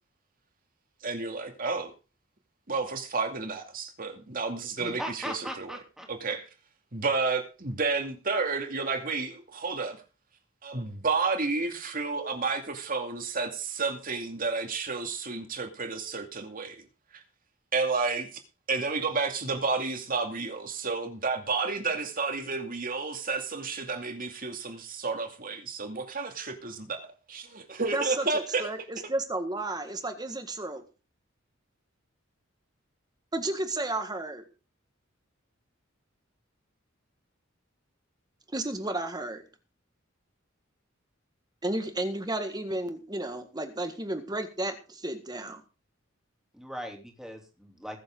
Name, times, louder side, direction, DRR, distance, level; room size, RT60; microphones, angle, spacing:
voice 1, 1.0-1.9 2.7-5.7 6.1-6.4 6.9-10.0 10.6-16.8 17.1-17.2 17.7-18.4 18.7-28.7, right 4 dB, 45° right, 2.4 m, -31 dB
voice 2, 4.8-6.4 46.5-48.0, equal, ahead, 3.1 m, -39 dB
voice 3, 27.9-30.8 33.3-34.4 38.5-39.4 41.6-45.6, right 2 dB, 20° right, 1.7 m, -32 dB
21.5 x 7.8 x 3.8 m
head